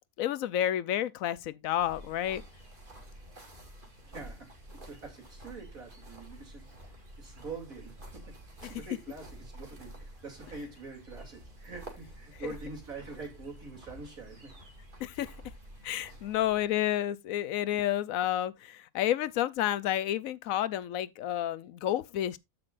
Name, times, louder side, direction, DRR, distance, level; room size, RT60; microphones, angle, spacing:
voice 1, 0.2-2.4 8.6-8.7 12.4-12.5 15.0-15.3 15.8-22.4, left 12 dB, 80° left, 1.1 m, -30 dB
sound 1, 1.8-16.7, right 1 dB, 40° right, 2.4 m, -49 dB
voice 2, 4.1-6.7 7.2-8.3 8.6-14.5 17.7-17.8, right 4 dB, 90° right, 3.5 m, -45 dB
14.0 x 6.1 x 2.5 m
omnidirectional pair, 1.4 m